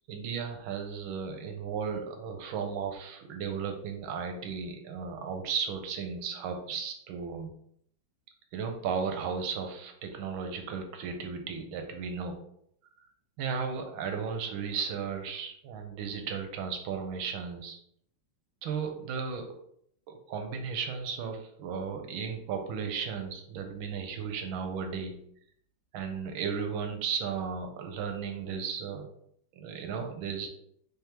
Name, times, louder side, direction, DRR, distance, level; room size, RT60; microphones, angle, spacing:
voice 1, 0.1-7.5 8.5-12.4 13.4-17.8 18.6-19.4 20.1-25.2 25.9-29.1 29.6-30.5, right 6 dB, 75° right, 5 dB, 1.3 m, -35 dB
3.5 x 3.3 x 2.9 m, 0.68 s
omnidirectional pair, 2.4 m